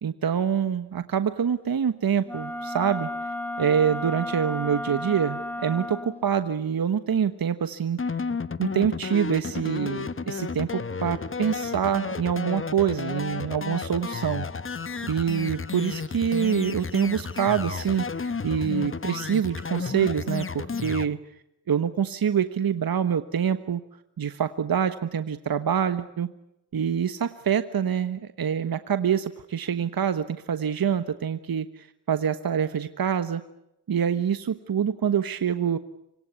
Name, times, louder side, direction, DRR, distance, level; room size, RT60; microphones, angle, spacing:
voice 1, 0.0-3.1 3.6-8.3 8.6-14.5 15.1-18.1 18.4-21.2 21.7-23.8 24.2-26.3 26.7-33.4 33.9-35.8, right 8 dB, 55° right, 11 dB, 1.3 m, -26 dB
Wind instrument woodwind instrument, 2.2-6.3, left 1 dB, 5° left, 3.3 m, -33 dB
sound 1, 8.0-21.1, left 5 dB, 30° left, 1.1 m, -32 dB
25.5 x 24.0 x 8.3 m, 0.83 s
supercardioid pair, 40°, 43 cm